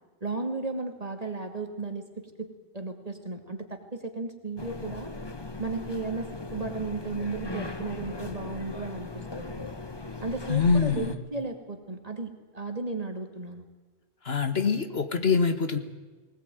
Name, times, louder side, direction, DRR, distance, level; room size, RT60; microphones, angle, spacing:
voice 1, 0.2-2.5 2.7-5.1 5.6-9.6 10.2-13.7, right 3 dB, 35° right, 5 dB, 2.5 m, -35 dB
sound 1, 4.6-11.2, left 2 dB, 25° left, 1.3 m, -38 dB
voice 2, 10.5-11.1 14.2-15.8, left 5 dB, 65° left, 8 dB, 1.9 m, -24 dB
20.5 x 19.0 x 9.2 m, 1.3 s
omnidirectional pair, 1.1 m